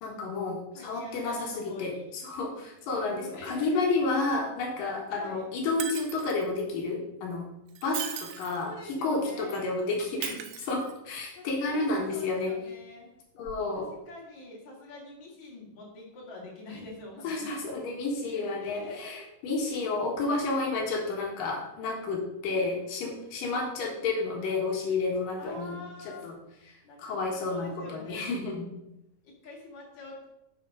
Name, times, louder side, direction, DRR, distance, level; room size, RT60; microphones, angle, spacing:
voice 1, 0.0-7.4 7.8-8.1 8.4-12.5 13.4-13.9 17.2-25.8 26.0-26.3 26.7-28.7, left 3 dB, 70° left, 0 dB, 3.2 m, -31 dB
voice 2, 0.7-2.1 3.0-3.8 5.1-5.4 8.1-8.2 8.6-9.7 11.3-13.1 13.7-17.7 18.3-19.3 19.6-19.8 22.5-23.3 25.4-26.3 26.8-28.3 29.2-30.3, left 2 dB, 55° left, -2 dB, 3.4 m, -46 dB
Shatter, 5.8-6.5 7.7-8.7 10.2-11.2 13.4-13.6, right 10 dB, 75° right, 2.0 m, -38 dB
8.2 x 6.5 x 5.0 m, 0.87 s
omnidirectional pair, 4.1 m